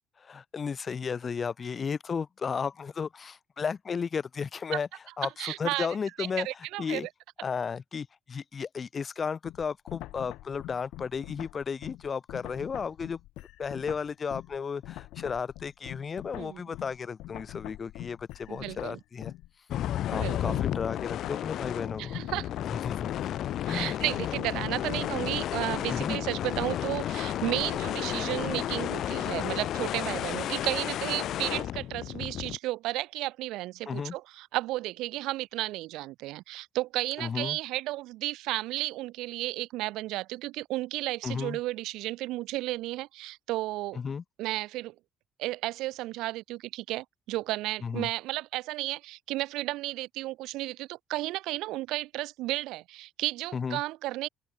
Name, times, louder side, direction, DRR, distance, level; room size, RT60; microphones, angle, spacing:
voice 1, 0.2-4.9 5.2-6.5 6.8-7.1 7.4-13.2 13.6-19.3 20.1-22.2 22.7-23.1 23.7-24.0 25.9-26.2 33.9-34.1 37.2-37.6 41.2-41.6 43.9-44.2 47.8-48.1 53.5-53.8, left 6 dB, 25° left, 1.0 m, -34 dB
voice 2, 5.2-5.9 6.2-7.1 16.4-16.6 18.5-19.0 20.1-20.6 22.0-22.5 23.7-44.0 44.4-44.9 45.4-54.3, right 18 dB, 80° right, 0.9 m, -33 dB
sound 1, 9.4-14.6 14.8-28.8, left 17 dB, 75° left, 4.0 m, -44 dB
sound 2, 19.7-32.6, left 12 dB, 55° left, 0.5 m, -32 dB
open air
cardioid pair, 155°, 0 cm